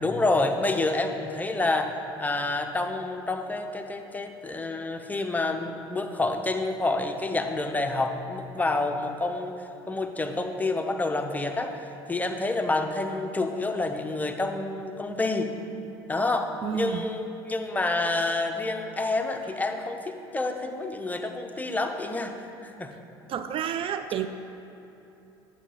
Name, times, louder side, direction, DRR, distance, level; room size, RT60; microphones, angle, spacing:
voice 1, 0.0-15.5 16.1-22.3 22.6-22.9, left 2 dB, 10° left, 5 dB, 0.7 m, -28 dB
voice 2, 16.6-17.1 23.3-24.3, right 8 dB, 45° right, 9 dB, 0.4 m, -30 dB
8.2 x 7.2 x 3.9 m, 2.9 s
hypercardioid pair, 70°, 13 cm